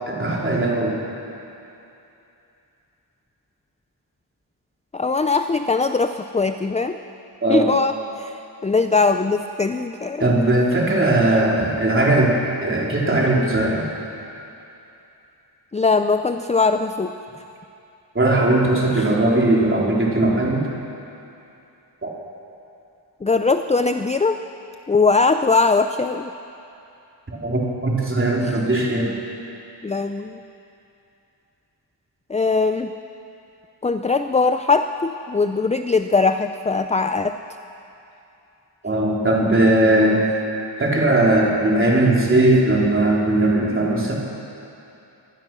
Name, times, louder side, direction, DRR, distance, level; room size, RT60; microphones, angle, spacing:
voice 1, 0.1-1.0 7.4-7.7 10.2-13.8 18.1-20.6 22.0-22.1 27.3-29.1 38.8-40.2 40.8-44.1, right 2 dB, 25° right, -4 dB, 3.7 m, -19 dB
voice 2, 4.9-7.0 7.5-10.2 15.7-17.1 18.9-19.1 23.2-24.4 24.9-26.3 28.4-28.6 29.8-30.4 32.3-32.9 33.8-37.4, left 4 dB, 15° left, 8 dB, 0.4 m, -20 dB
24.5 x 19.5 x 6.1 m, 2.8 s
wide cardioid pair, 180°, 45 cm